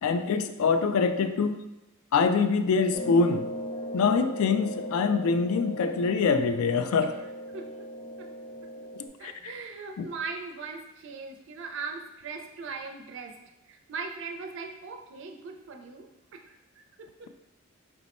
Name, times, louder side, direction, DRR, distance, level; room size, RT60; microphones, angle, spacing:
voice 1, 0.0-1.6 2.1-3.5 3.9-7.2 9.2-9.5 10.0-10.1, left 5 dB, 70° left, 10 dB, 0.3 m, -24 dB
sound 1, 2.9-9.1, equal, 15° left, 0.5 m, -38 dB
voice 2, 7.5-7.9 8.2-8.3 9.2-13.4 13.7-17.3, right 4 dB, 55° right, 4 dB, 0.4 m, -40 dB
4.4 x 2.1 x 4.1 m, 1.0 s
head